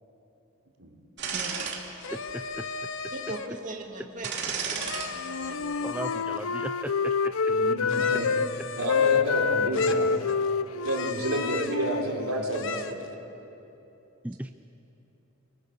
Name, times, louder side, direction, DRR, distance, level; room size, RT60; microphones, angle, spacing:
sound 1, 1.2-1.8 2.3-2.4 4.2-5.1 5.4-5.6, right 6 dB, 50° right, 2.9 m, -32 dB
voice 1, 1.3-1.6 3.1-4.8 5.1-5.9, right 1 dB, 35° right, 0 dB, 2.4 m, -40 dB
sound 2, 2.0-3.6 4.8-6.4 7.9-9.4 9.7-10.5 10.8-11.9 12.5-13.1, left 5 dB, 60° left, 1.2 m, -37 dB
voice 2, 2.1-2.6 5.8-7.3 14.2-14.5, right 1 dB, 5° right, 7 dB, 0.5 m, -37 dB
Wind instrument woodwind instrument, 5.2-8.5 8.8-12.6, left 5 dB, 75° left, 0.7 m, -27 dB
voice 3, 7.5-8.3 8.8-10.2 10.8-13.0, right 1 dB, 75° right, 1 dB, 3.9 m, -30 dB
27.5 x 24.0 x 6.8 m, 3.0 s
head